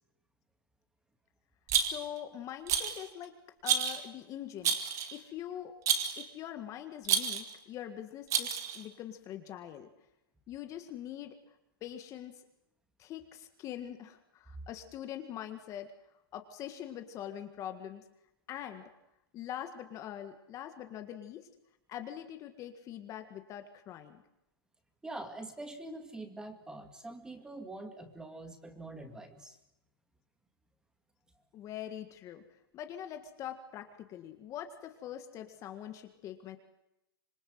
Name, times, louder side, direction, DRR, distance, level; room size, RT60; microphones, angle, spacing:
Rattle, 1.7-2.2 2.7-3.1 3.6-4.0 4.6-5.2 5.9-6.2 7.0-7.5 8.3-8.8, right 8 dB, 25° right, 2.4 m, -30 dB
voice 1, 1.8-3.3 3.6-4.8 5.1-5.7 6.2-9.9 10.5-11.4 11.8-12.4 13.0-15.9 16.3-18.0 18.5-18.8 19.3-21.5 21.9-24.2 31.5-32.4 32.7-36.6, left 10 dB, 25° left, 7 dB, 1.8 m, -43 dB
voice 2, 25.0-29.6, right 2 dB, 5° right, 6 dB, 2.1 m, -44 dB
26.0 x 21.5 x 7.9 m, 0.90 s
hypercardioid pair, 145°, 13 cm